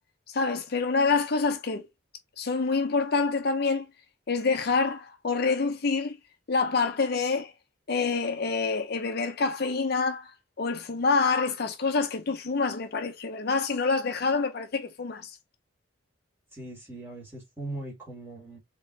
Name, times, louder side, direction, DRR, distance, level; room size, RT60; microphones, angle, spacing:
voice 1, 0.3-1.9 2.4-3.9 4.3-6.2 6.5-7.5 7.9-15.4, left 4 dB, 50° left, 0.6 m, -27 dB
voice 2, 16.5-18.6, right 2 dB, 10° right, 1.9 m, -40 dB
3.7 x 2.9 x 3.8 m
head